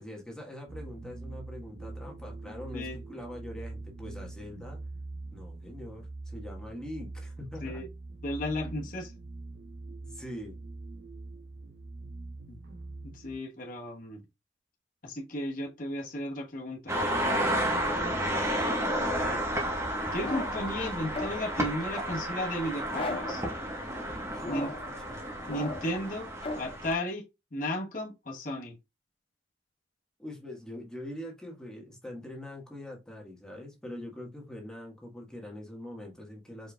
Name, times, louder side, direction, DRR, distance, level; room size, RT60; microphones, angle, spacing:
voice 1, 0.0-4.8 5.3-7.8 8.6-8.7 9.9-10.6 17.9-18.2 24.3-25.2 30.2-36.7, left 1 dB, 5° left, 1.5 m, -43 dB
sound 1, 0.7-13.4, right 2 dB, 70° right, 0.7 m, -43 dB
voice 2, 8.2-9.1 12.5-12.6 13.0-14.2 15.0-16.9 19.0-19.4 20.1-23.4 24.5-24.7 25.5-26.3 26.6-27.2 27.5-28.8, left 1 dB, 50° left, 1.2 m, -34 dB
sound 2, 16.9-26.9, right 1 dB, 15° right, 1.2 m, -31 dB
sound 3, 20.2-20.7 21.1-21.6 22.9-23.5 24.4-25.0 25.5-26.0 26.4-26.8, left 2 dB, 30° left, 0.5 m, -36 dB
5.0 x 4.5 x 2.3 m
head